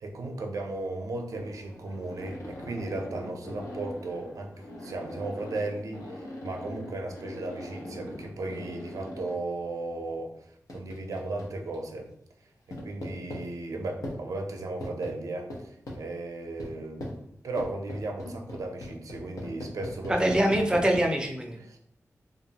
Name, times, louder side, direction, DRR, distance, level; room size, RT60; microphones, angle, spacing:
voice 1, 0.0-4.5 4.8-12.1 12.7-20.6 21.6-21.8, right 2 dB, 75° right, 3 dB, 0.5 m, -36 dB
sound 1, 1.3-9.4 10.7-11.8 12.7-13.4 14.0-14.2 14.8-15.1 15.5-16.0 16.6-16.7 17.0-17.2 17.6-21.0, left 1 dB, 85° left, 0.7 m, -40 dB
voice 2, 20.1-21.6, right 1 dB, 15° right, 2 dB, 0.5 m, -24 dB
2.9 x 2.4 x 2.7 m, 0.72 s
wide cardioid pair, 110°, 6 cm